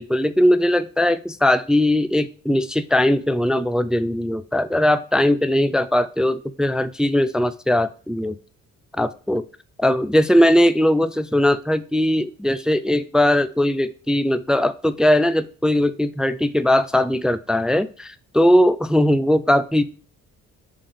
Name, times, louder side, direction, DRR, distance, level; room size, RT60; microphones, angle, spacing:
voice 1, 0.0-8.3 9.0-9.4 9.8-19.8, left 1 dB, ahead, 12 dB, 0.4 m, -19 dB
5.5 x 3.5 x 5.4 m, 0.38 s
cardioid pair, 90°, 30 cm